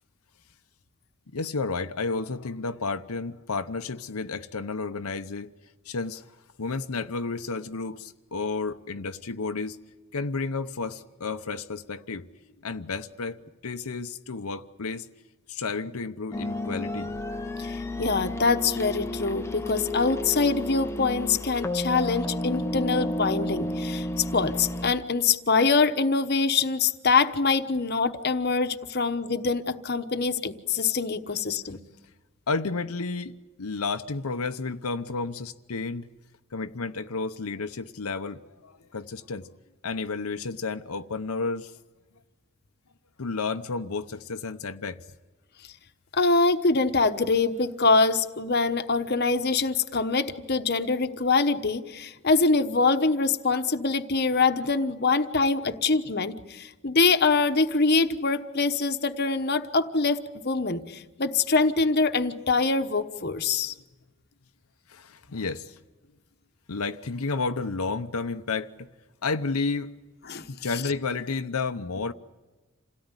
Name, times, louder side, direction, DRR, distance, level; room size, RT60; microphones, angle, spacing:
voice 1, 1.3-5.5 5.8-6.3 6.6-9.8 10.1-12.3 12.6-13.4 13.6-15.1 15.5-17.1 32.5-33.3 33.6-36.1 36.5-39.5 39.8-41.8 43.2-45.0 64.9-65.8 66.7-68.9 69.2-69.9 70.5-72.1, left 4 dB, 85° left, 0.8 m, -31 dB
sound 1, 16.3-24.9, left 1 dB, 10° left, 0.7 m, -32 dB
voice 2, 17.6-31.8 46.1-63.7 70.3-70.4, left 4 dB, 45° left, 1.1 m, -24 dB
27.5 x 17.5 x 9.8 m
head